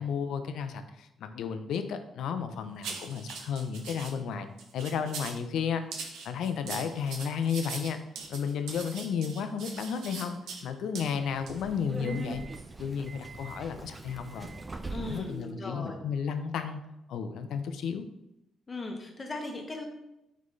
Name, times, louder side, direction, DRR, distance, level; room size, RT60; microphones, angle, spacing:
voice 1, 0.0-4.5 4.7-5.8 6.2-8.0 8.3-12.4 12.8-14.5 15.0-16.8 17.1-18.1, left 7 dB, 75° left, 8 dB, 0.4 m, -33 dB
sound 1, 2.8-4.1 4.6-5.4 5.9-10.6 10.9-11.1 11.5-11.6, right 5 dB, 85° right, 0.6 m, -41 dB
Subway metro underground, 11.2-15.4, right 2 dB, 20° right, 0.3 m, -41 dB
voice 2, 14.9-16.0 18.7-19.8, left 2 dB, 30° left, 3 dB, 0.8 m, -38 dB
3.8 x 3.7 x 3.2 m, 0.88 s
cardioid pair, 90°, 0 cm